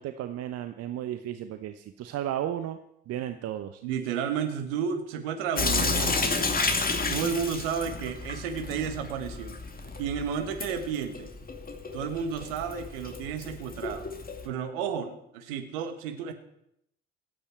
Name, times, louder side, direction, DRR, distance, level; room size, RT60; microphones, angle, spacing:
voice 1, 0.0-2.8 3.1-3.7, right 11 dB, 55° right, 9 dB, 0.9 m, -34 dB
voice 2, 3.8-6.5 7.1-9.6 10.0-11.3 11.9-14.1 14.4-16.3, right 7 dB, 70° right, 7 dB, 1.6 m, -32 dB
Sink (filling or washing) / Drip, 5.6-14.5, left 3 dB, 30° left, 2.1 m, -31 dB
26.0 x 8.8 x 4.5 m, 0.77 s
figure-of-eight pair, 50°, 30 cm